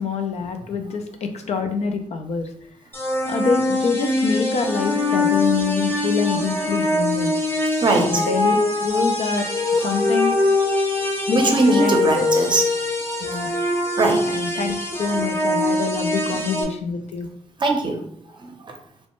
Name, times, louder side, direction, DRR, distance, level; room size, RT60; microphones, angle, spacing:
voice 1, 0.0-2.5 3.2-7.3 7.9-10.3 11.3-12.3 13.2-13.5 14.3-17.3, left 5 dB, 65° left, 6 dB, 0.4 m, -25 dB
sound 1, 2.9-16.6, left 2 dB, 20° left, 0.7 m, -23 dB
voice 2, 7.8-8.2 11.3-12.7 14.0-14.2 17.6-18.0 18.4-18.8, right 2 dB, 40° right, 3 dB, 0.6 m, -20 dB
3.0 x 2.1 x 3.0 m, 0.64 s
cardioid pair, 85°, 12 cm